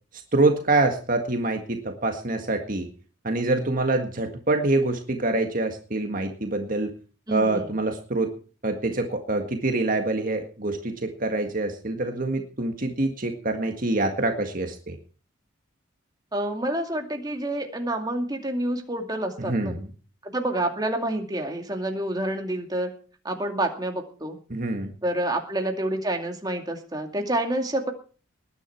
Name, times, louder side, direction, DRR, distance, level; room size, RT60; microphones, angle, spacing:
voice 1, 0.3-2.9 3.2-6.9 7.3-8.3 8.6-15.0 19.4-19.9 24.5-24.9, right 2 dB, 45° right, 5 dB, 1.8 m, -25 dB
voice 2, 7.3-7.7 16.3-19.8 20.2-22.9 23.2-24.4 25.0-27.9, right 1 dB, 20° right, 3 dB, 2.4 m, -28 dB
20.0 x 10.0 x 4.5 m, 0.38 s
head